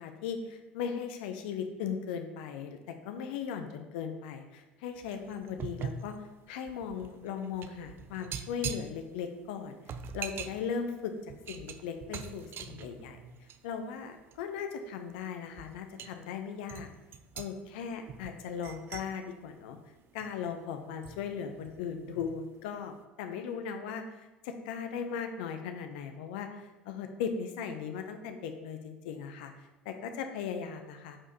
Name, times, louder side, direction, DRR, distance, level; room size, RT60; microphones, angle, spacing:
voice 1, 0.0-9.8 10.1-11.1 11.5-13.2 13.6-16.9 17.3-19.8 20.1-29.5 29.8-31.2, left 7 dB, 65° left, 6 dB, 0.8 m, -38 dB
sound 1, 5.0-13.8 14.2-14.4 15.1-15.2 15.6-16.1 16.7-20.6 21.0-22.4 22.7-22.9, right 7 dB, 40° right, 0.5 m, -43 dB
7.5 x 4.9 x 4.1 m, 1.0 s
figure-of-eight pair, 70°, 6 cm